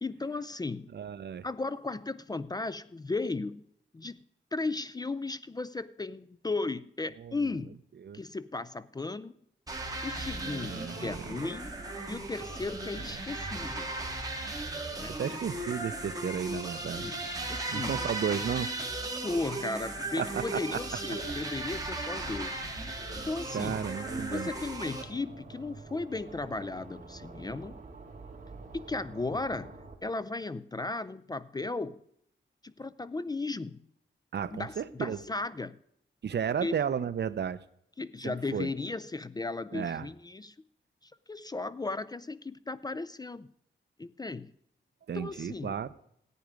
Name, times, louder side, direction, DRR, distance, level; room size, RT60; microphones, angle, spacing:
voice 1, 0.0-0.9 1.4-3.7 3.9-4.2 4.5-7.8 8.1-9.3 10.0-11.7 12.1-13.9 14.9-15.4 16.9-17.1 17.5-18.1 19.2-22.6 23.1-23.8 24.3-27.8 28.7-32.0 32.6-33.8 34.5-35.8 36.6-36.7 38.0-40.5 41.0-43.5 44.0-44.5 45.1-45.8, left 3 dB, 20° left, 16 dB, 0.4 m, -35 dB
voice 2, 0.9-1.5 7.2-7.5 8.0-8.2 10.3-11.2 15.2-17.0 17.7-18.7 20.2-20.8 23.5-24.5 34.3-35.2 36.2-37.6 38.2-38.7 39.7-40.1 45.1-45.9, right 7 dB, 60° right, 15 dB, 0.6 m, -33 dB
sound 1, 9.7-25.0, right 2 dB, 20° right, 2.1 m, -37 dB
sound 2, 25.0-30.0, right 3 dB, 40° right, 2.3 m, -47 dB
14.5 x 9.3 x 5.1 m, 0.72 s
wide cardioid pair, 150°, 20 cm